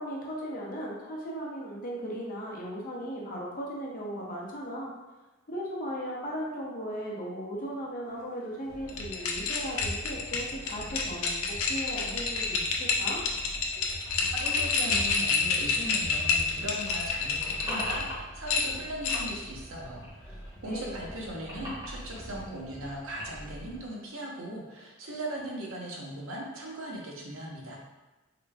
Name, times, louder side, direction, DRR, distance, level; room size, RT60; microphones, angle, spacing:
voice 1, 0.0-4.9 5.5-13.2 20.6-20.9, equal, 45° left, -4 dB, 0.8 m, -37 dB
Train, 8.7-23.9, equal, 5° left, 0.8 m, -46 dB
sound 1, 8.9-18.0 18.5-19.4, left 5 dB, 90° left, 0.5 m, -28 dB
sound 2, 11.7-16.5 16.7-18.8 19.1-20.5 20.9-23.5, equal, 25° right, 1.1 m, -43 dB
voice 2, 14.3-27.8, right 1 dB, 80° right, -2 dB, 0.8 m, -39 dB
3.8 x 2.2 x 3.4 m, 1.1 s
head